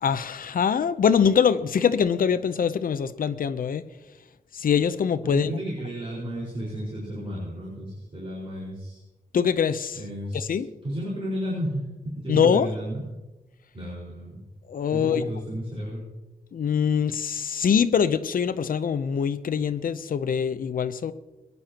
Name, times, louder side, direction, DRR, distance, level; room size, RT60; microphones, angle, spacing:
voice 1, 0.0-3.8 4.5-5.6 9.3-10.0 10.3-10.7 12.3-12.7 14.7-15.3 16.5-21.1, left 7 dB, 65° left, 12 dB, 0.7 m, -23 dB
voice 2, 5.2-9.0 9.9-11.9 12.2-13.0 13.7-14.4 14.9-16.1, equal, 35° right, -7 dB, 4.8 m, -33 dB
22.0 x 11.0 x 2.9 m, 1.0 s
wide cardioid pair, 120°, 16 cm